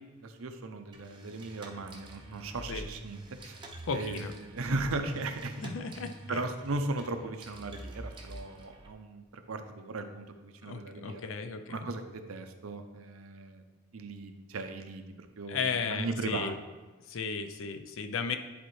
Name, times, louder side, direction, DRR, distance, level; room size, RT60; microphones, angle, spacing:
voice 1, 0.2-3.6 3.9-5.7 6.3-11.3 11.7-13.6 13.9-16.6, right 2 dB, 70° right, 7 dB, 0.6 m, -37 dB
sound 1, 0.9-8.9, right 1 dB, 20° right, 0.6 m, -47 dB
voice 2, 3.9-4.3 4.6-4.8 5.6-6.4 10.6-11.9 15.5-16.6 17.1-18.4, left 5 dB, 60° left, 7 dB, 0.5 m, -35 dB
10.5 x 4.2 x 3.2 m, 1.3 s
head